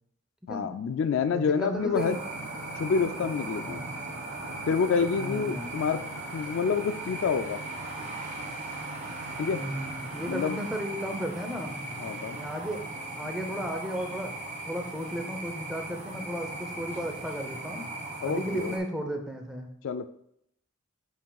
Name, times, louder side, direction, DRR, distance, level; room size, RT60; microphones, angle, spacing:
voice 1, 0.5-2.2 2.8-3.8 4.7-6.0 6.3-7.6 9.4-9.7 10.3-10.6 12.0-12.4 18.2-18.7 19.8-20.1, left 5 dB, 60° left, 11 dB, 0.3 m, -28 dB
voice 2, 1.3-2.1 3.7-3.9 5.2-5.8 9.5-11.8 12.3-12.8 13.2-17.9 18.2-19.7, equal, 5° right, 3 dB, 0.6 m, -34 dB
sound 1, 1.7-10.7, right 4 dB, 60° right, 0.5 m, -46 dB
sound 2, 1.9-18.8, right 2 dB, 30° right, 1.3 m, -38 dB
7.6 x 5.7 x 2.3 m, 0.74 s
head